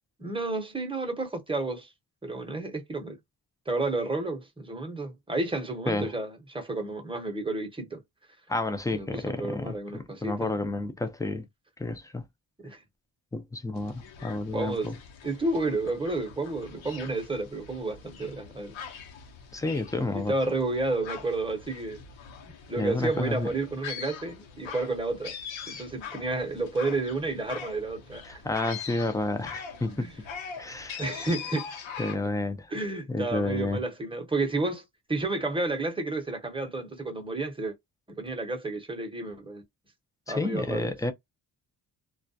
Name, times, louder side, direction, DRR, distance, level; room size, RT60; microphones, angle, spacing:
voice 1, 0.2-1.9 2.2-3.2 3.7-8.0 8.9-10.5 12.6-12.8 14.5-14.9 15.2-18.8 20.1-22.0 22.7-25.4 25.7-28.4 29.9-30.1 31.0-31.7 32.7-37.7 38.1-39.6 40.3-40.9, right 2 dB, 10° right, 0.8 m, -31 dB
voice 2, 8.5-11.5 11.8-12.2 13.3-14.9 19.5-20.3 22.8-23.5 28.3-30.1 30.6-31.0 32.0-32.7 33.1-33.8 40.3-41.1, left 2 dB, 10° left, 0.4 m, -30 dB
sound 1, 13.7-32.2, left 7 dB, 85° left, 0.8 m, -43 dB
2.3 x 2.1 x 2.6 m
cardioid pair, 90°, 45 cm